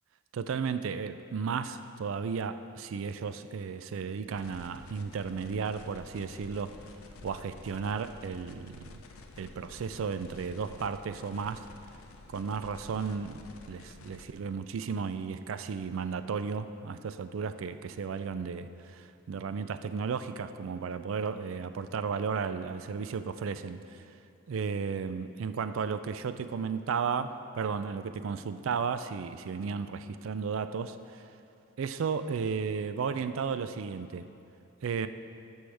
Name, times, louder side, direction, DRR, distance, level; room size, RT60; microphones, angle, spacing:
voice 1, 0.3-6.8 7.2-9.0 9.4-11.7 12.3-24.0 24.5-31.2 31.8-34.3 34.8-35.1, right 5 dB, 65° right, 11 dB, 0.4 m, -34 dB
sound 1, 4.3-14.3, left 2 dB, 85° left, 0.6 m, -50 dB
11.5 x 6.2 x 3.4 m, 2.7 s
head